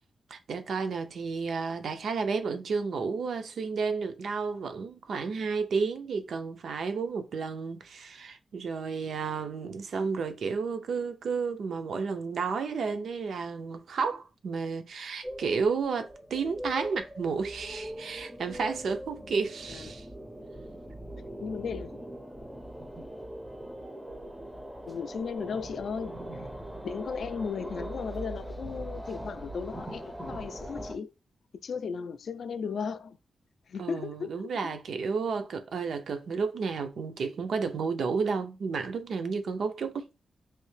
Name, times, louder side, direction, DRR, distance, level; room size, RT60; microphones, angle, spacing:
voice 1, 0.3-20.1 33.8-40.1, right 5 dB, 70° right, 0.5 m, -32 dB
sound 1, 15.2-31.0, right 1 dB, 5° right, 0.5 m, -41 dB
voice 2, 21.4-22.0 24.9-26.2 26.8-31.1 31.6-33.2 33.7-34.5, left 6 dB, 65° left, 0.3 m, -36 dB
3.2 x 2.7 x 3.2 m
wide cardioid pair, 155°, 0 cm